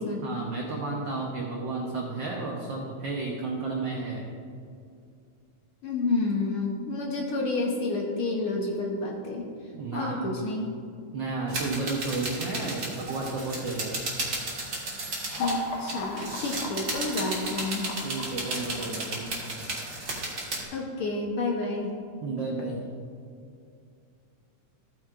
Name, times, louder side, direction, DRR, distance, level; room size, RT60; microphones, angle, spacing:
voice 1, 0.2-4.2 9.7-10.3 11.1-14.0 18.0-19.3 22.2-22.8, right 3 dB, 75° right, -1 dB, 1.1 m, -32 dB
voice 2, 5.8-9.5 9.9-10.7 15.4-17.9 20.7-21.9, left 3 dB, 65° left, -1 dB, 1.5 m, -29 dB
sound 1, 11.5-15.6 15.9-20.6, right 2 dB, 40° right, 2.0 m, -34 dB
sound 2, 15.3-20.4, left 3 dB, 85° left, 2.5 m, -42 dB
14.5 x 9.1 x 2.5 m, 2.4 s
omnidirectional pair, 3.3 m